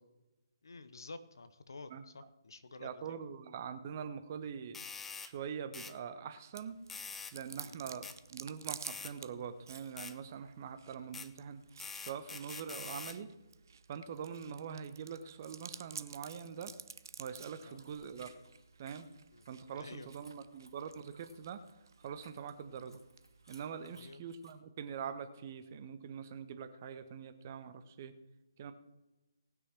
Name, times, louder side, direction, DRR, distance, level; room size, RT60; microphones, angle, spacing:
voice 1, 0.6-2.9 7.6-7.8 17.7-17.8 19.3-19.4 19.8-20.1 23.9-24.2, left 3 dB, 60° left, 12 dB, 1.0 m, -50 dB
voice 2, 2.8-4.8 5.2-6.8 7.3-11.6 12.0-13.3 13.9-16.7 17.2-18.3 18.8-19.1 19.5-21.6 22.0-23.0 23.5-28.1 28.6-28.7, right 7 dB, 35° right, 11 dB, 1.0 m, -44 dB
sound 1, 4.7-5.3 5.7-5.9 6.9-7.4 8.0-8.2 8.8-9.1 10.0-10.1 11.1-11.3 11.8-13.2, left 5 dB, 5° left, 0.4 m, -45 dB
Chewing mastication, 6.5-24.1, right 6 dB, 50° right, 0.6 m, -53 dB
sound 2, 17.7-24.5, right 1 dB, 85° right, 2.9 m, -64 dB
18.5 x 6.2 x 6.0 m, 1.0 s
figure-of-eight pair, 140°, 2 cm